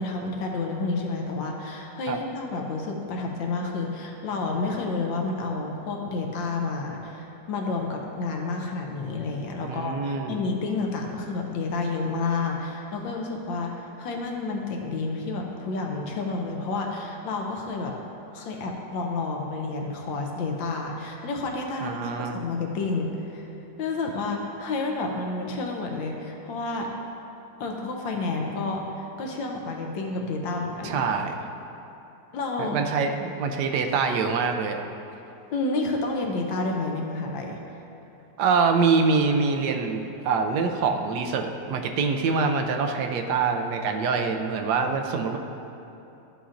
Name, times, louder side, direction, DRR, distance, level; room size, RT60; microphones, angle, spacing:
voice 1, 0.0-17.9 18.3-23.5 23.8-26.9 27.6-31.1 32.3-32.8 35.5-37.6, left 3 dB, 85° left, 1 dB, 1.5 m, -30 dB
voice 2, 9.6-10.4 21.8-22.4 30.8-31.4 32.6-34.8 38.4-45.4, right 5 dB, 70° right, 5 dB, 1.1 m, -25 dB
12.5 x 6.9 x 2.5 m, 2.9 s
omnidirectional pair, 2.0 m